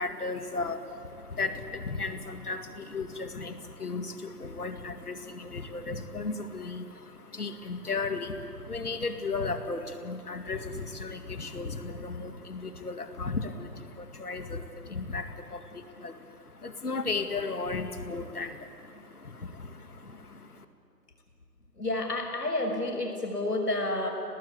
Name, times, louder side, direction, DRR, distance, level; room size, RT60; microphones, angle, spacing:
voice 1, 0.0-20.7, left 3 dB, 70° left, 7 dB, 2.3 m, -35 dB
voice 2, 21.8-24.1, left 2 dB, 90° left, 2 dB, 6.2 m, -30 dB
28.0 x 19.0 x 8.3 m, 2.5 s
figure-of-eight pair, 170°, 47 cm